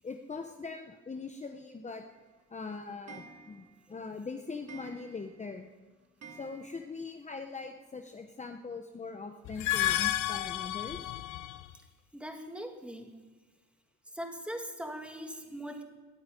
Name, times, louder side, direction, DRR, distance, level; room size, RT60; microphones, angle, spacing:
voice 1, 0.0-2.0 2.5-5.7 6.3-11.1, left 4 dB, 25° left, 5 dB, 1.0 m, -41 dB
Clock, 2.1-7.2 7.5-7.6 7.8-7.9 8.1-8.2 9.4-9.5 10.1-10.2 10.7-10.8 11.3-11.4 12.0-12.1 12.6-12.7, right 5 dB, 55° right, 2.4 m, -54 dB
sound 1, 9.5-11.7, left 14 dB, 85° left, 0.7 m, -31 dB
voice 2, 12.1-13.2 14.1-15.8, equal, 5° right, 3 dB, 2.4 m, -41 dB
15.0 x 8.1 x 10.0 m, 1.3 s
cardioid pair, 90°, 30 cm